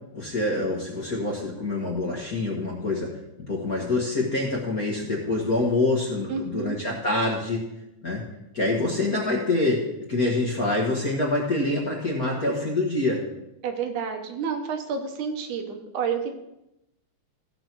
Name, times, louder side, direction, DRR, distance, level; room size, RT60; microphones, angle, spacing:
voice 1, 0.1-3.1 3.5-7.6 8.0-8.2 8.5-13.2, left 2 dB, 40° left, -2 dB, 1.4 m, -26 dB
voice 2, 6.3-6.8 13.6-16.3, right 6 dB, 85° right, 5 dB, 2.6 m, -30 dB
15.0 x 5.2 x 6.0 m, 0.89 s
omnidirectional pair, 3.4 m